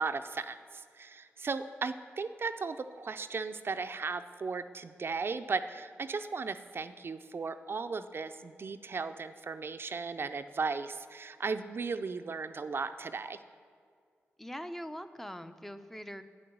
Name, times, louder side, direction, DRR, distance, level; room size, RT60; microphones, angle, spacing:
voice 1, 0.0-13.4, right 4 dB, 50° right, 9 dB, 0.5 m, -36 dB
voice 2, 14.4-16.2, equal, 5° left, 10 dB, 0.6 m, -42 dB
8.7 x 8.5 x 6.8 m, 2.1 s
cardioid pair, 55°, 5 cm